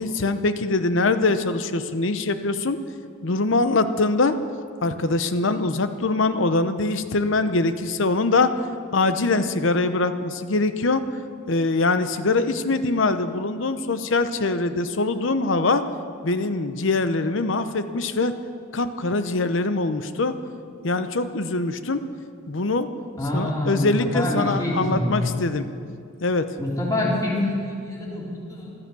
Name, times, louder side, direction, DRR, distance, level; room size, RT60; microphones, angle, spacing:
voice 1, 0.0-2.8 3.2-4.4 4.8-8.5 8.9-11.0 11.5-15.8 16.2-18.3 18.7-20.3 20.8-22.0 22.5-22.9 23.3-25.7 26.2-26.4, left 3 dB, 65° left, 10 dB, 0.8 m, -23 dB
voice 2, 23.2-25.3 26.6-28.7, left 1 dB, 20° left, -5 dB, 3.1 m, -26 dB
15.0 x 12.5 x 6.9 m, 2.4 s
head